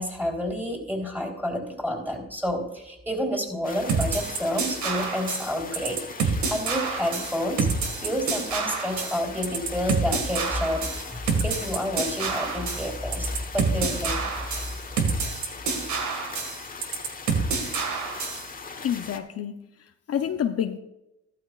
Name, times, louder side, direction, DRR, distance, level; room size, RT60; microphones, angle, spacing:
voice 1, 0.0-14.2, equal, 5° right, 3.8 m, -29 dB
sound 1, 3.6-19.2, left 4 dB, 30° left, 1.2 m, -40 dB
sound 2, 3.9-18.5, right 5 dB, 70° right, 1.9 m, -28 dB
voice 2, 18.8-20.8, left 9 dB, 55° left, 0.7 m, -29 dB
15.0 x 12.0 x 2.5 m
cardioid pair, 90°, 30 cm